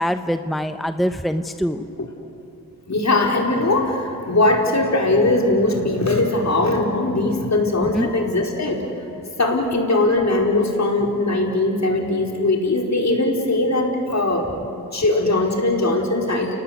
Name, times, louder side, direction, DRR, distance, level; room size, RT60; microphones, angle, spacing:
voice 1, 0.0-1.9 7.8-8.1, equal, ahead, 9 dB, 0.9 m, -23 dB
voice 2, 2.8-8.8 9.4-14.5 14.7-16.6, left 2 dB, 50° left, 1 dB, 4.8 m, -20 dB
29.5 x 19.0 x 8.4 m, 2.9 s
cardioid pair, 45°, 35 cm